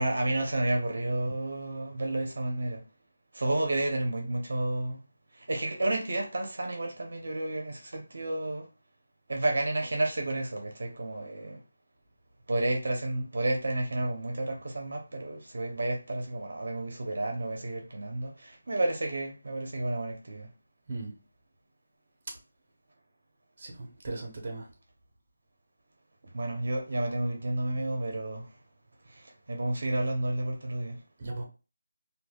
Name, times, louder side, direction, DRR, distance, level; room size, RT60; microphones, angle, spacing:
voice 1, 0.0-2.8 3.3-5.0 5.3-8.7 9.3-11.6 12.5-20.5 26.3-28.6 29.0-31.0, right 1 dB, 65° right, 0.7 m, -31 dB
voice 2, 23.6-24.7 31.2-31.5, right 2 dB, 35° right, 0.8 m, -37 dB
3.3 x 2.2 x 2.3 m
figure-of-eight pair, 170°, 0 cm